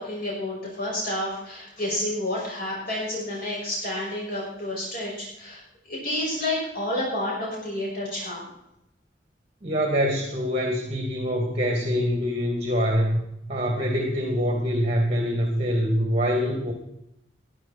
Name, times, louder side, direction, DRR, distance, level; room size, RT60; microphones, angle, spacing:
voice 1, 0.0-8.5, left 1 dB, 55° left, -5 dB, 6.3 m, -30 dB
voice 2, 9.6-13.2 13.5-16.7, equal, 35° right, 1 dB, 2.6 m, -24 dB
20.0 x 11.5 x 4.4 m, 0.83 s
head